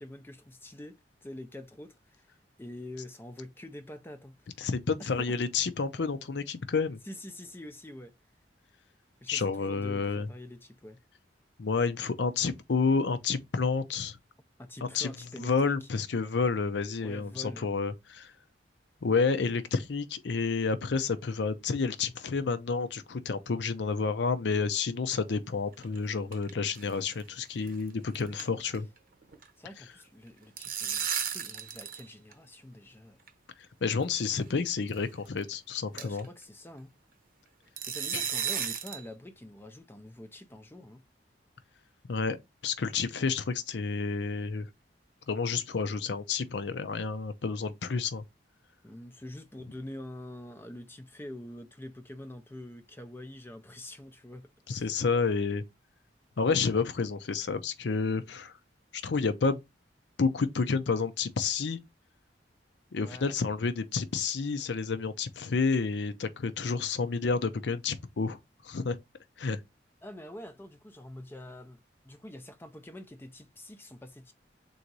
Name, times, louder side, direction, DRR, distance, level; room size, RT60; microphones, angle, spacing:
voice 1, 0.0-2.3 2.6-4.4 5.0-5.4 7.0-8.1 9.2-11.0 14.6-15.9 17.0-17.7 29.6-33.2 36.0-36.9 37.9-41.0 48.8-54.9 62.9-63.4 70.0-71.8 72.0-74.3, left 1 dB, 10° left, 0.4 m, -45 dB
voice 2, 4.6-7.0 9.3-10.3 11.6-14.2 14.9-15.1 15.4-18.3 19.0-28.9 33.8-36.3 38.1-38.2 42.1-42.4 42.6-44.7 45.3-48.2 54.7-55.6 56.4-58.5 59.0-59.6 60.2-61.8 62.9-68.4 68.6-69.0 69.4-69.6, left 4 dB, 70° left, 0.5 m, -30 dB
sound 1, 25.7-26.5 26.8-26.9 27.2-27.3 27.7-27.9 28.1-29.0 29.2-29.5 30.3-32.0 32.3-32.4 33.3-33.4 34.2-34.4 34.9-35.0 35.4-35.5 36.0-36.3 37.8-39.1, right 8 dB, 50° right, 0.7 m, -34 dB
3.8 x 2.6 x 4.6 m
head